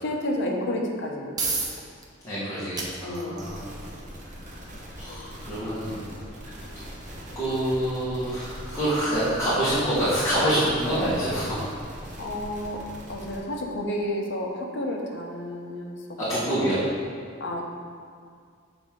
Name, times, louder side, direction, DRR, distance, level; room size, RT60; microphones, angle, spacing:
voice 1, 0.0-1.6 3.0-3.6 5.1-5.5 6.2-6.4 12.2-16.7 17.4-17.7, left 1 dB, 55° left, 0 dB, 0.8 m, -31 dB
sound 1, 0.9-15.8, right 3 dB, 20° right, 0.6 m, -40 dB
voice 2, 2.2-3.6 5.0-6.0 6.4-6.5 7.3-11.6 16.2-16.8, right 1 dB, 15° left, -13 dB, 1.4 m, -26 dB
sound 2, 3.4-13.4, equal, 35° right, 1.0 m, -41 dB
6.9 x 4.3 x 3.7 m, 2.1 s
head